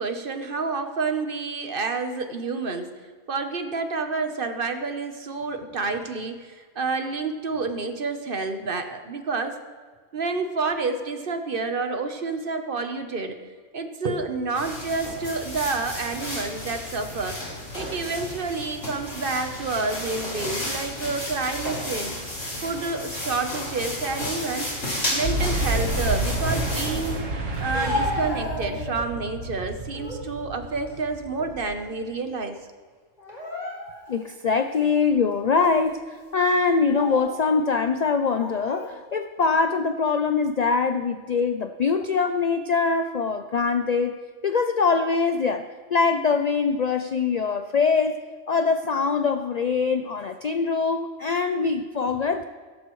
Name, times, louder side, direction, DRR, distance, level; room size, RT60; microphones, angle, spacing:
voice 1, 0.0-2.9 3.3-9.6 10.1-13.4 13.7-17.4 17.7-22.2 22.6-24.7 25.1-27.2 27.6-32.6, right 3 dB, 45° right, 7 dB, 1.1 m, -29 dB
sound 1, 14.5-27.2, left 1 dB, 75° left, 4.6 m, -32 dB
Boom, 25.2-31.8, right 1 dB, 80° right, 1.9 m, -29 dB
Speech, 27.5-29.2 29.7-30.3 30.7-31.9 32.2-32.4 33.2-34.2 34.7-34.9 35.6-35.9 36.7-37.4 38.2-38.9, left 1 dB, 35° left, 4.2 m, -33 dB
voice 2, 34.1-44.1 44.4-48.2 48.5-52.4, left 5 dB, 55° left, 8 dB, 0.4 m, -23 dB
16.5 x 14.0 x 3.1 m, 1.5 s
omnidirectional pair, 1.3 m